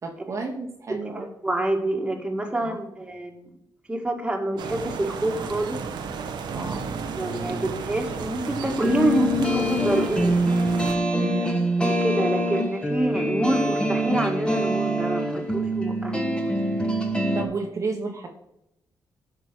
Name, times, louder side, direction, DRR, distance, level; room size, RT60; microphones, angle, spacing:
voice 1, 0.0-1.3 2.6-2.8 6.5-6.9 11.1-11.6 17.3-18.3, right 3 dB, 40° right, 1 dB, 1.3 m, -31 dB
voice 2, 1.1-3.5 3.9-5.8 7.1-10.3 11.8-16.5, right 1 dB, 15° right, 2 dB, 1.9 m, -27 dB
sound 1, 4.6-11.0, right 5 dB, 90° right, 1.2 m, -33 dB
sound 2, 8.6-17.4, equal, 15° left, 1.6 m, -25 dB
11.5 x 6.1 x 6.2 m, 0.83 s
cardioid pair, 120°, 7 cm